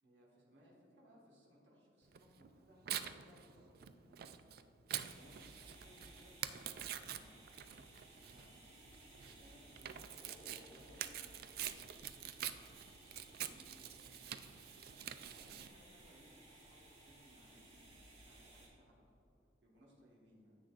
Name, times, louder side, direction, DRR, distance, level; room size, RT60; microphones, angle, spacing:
voice 1, 0.0-4.6 5.1-7.4 7.7-8.6 9.2-11.7 13.4-19.3 19.6-20.6, equal, 75° right, -4 dB, 1.5 m, -65 dB
Tearing, 2.1-15.7, right 10 dB, 55° right, 0.3 m, -46 dB
sound 1, 5.0-18.7, right 2 dB, 40° right, 1.6 m, -60 dB
Singing, 10.2-12.2, left 2 dB, 25° left, 0.6 m, -64 dB
9.9 x 7.8 x 2.4 m, 2.8 s
head